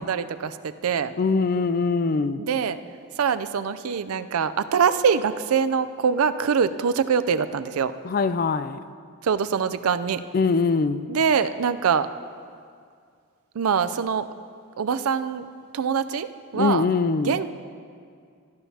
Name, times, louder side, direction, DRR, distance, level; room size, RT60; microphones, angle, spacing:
voice 1, 0.0-1.2 2.4-2.8 3.2-7.9 9.2-10.2 11.1-12.1 13.5-14.3 14.8-15.5 15.7-16.9 17.2-17.5, right 6 dB, 80° right, 12 dB, 0.4 m, -24 dB
voice 2, 1.2-2.4 8.0-8.8 10.3-11.1 16.5-17.4, left 4 dB, 40° left, 13 dB, 0.3 m, -22 dB
16.5 x 13.0 x 2.8 m, 2.2 s
head